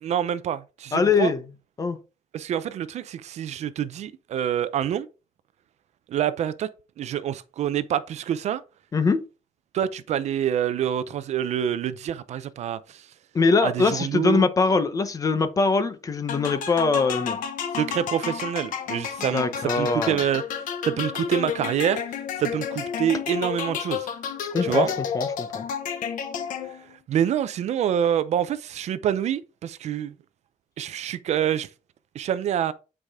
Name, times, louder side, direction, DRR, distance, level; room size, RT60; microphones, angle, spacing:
voice 1, 0.0-1.3 2.3-5.1 6.1-6.7 7.0-8.6 9.7-13.0 13.6-14.5 17.8-19.5 19.8-22.0 22.4-24.1 24.6-24.9 27.1-30.1 30.8-31.7 32.1-32.7, right 10 dB, 55° right, 0.5 m, -26 dB
voice 2, 0.9-1.4 1.8-2.0 8.9-9.2 13.3-17.4 19.3-20.2 24.5-24.9 25.1-25.6, left 4 dB, 25° left, 0.8 m, -22 dB
sound 1, 16.3-27.0, left 7 dB, 75° left, 1.1 m, -31 dB
8.8 x 4.8 x 3.6 m
cardioid pair, 170°, 14 cm